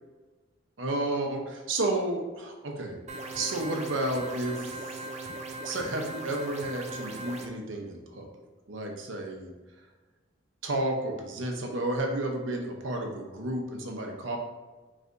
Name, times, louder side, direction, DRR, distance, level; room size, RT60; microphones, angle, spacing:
voice 1, 0.8-3.0 3.3-5.0 5.6-8.3 8.7-9.5 10.6-14.4, right 2 dB, 85° right, 2 dB, 0.8 m, -31 dB
sound 1, 3.1-7.5, right 2 dB, 35° right, 0.4 m, -39 dB
5.2 x 3.3 x 2.6 m, 1.3 s
head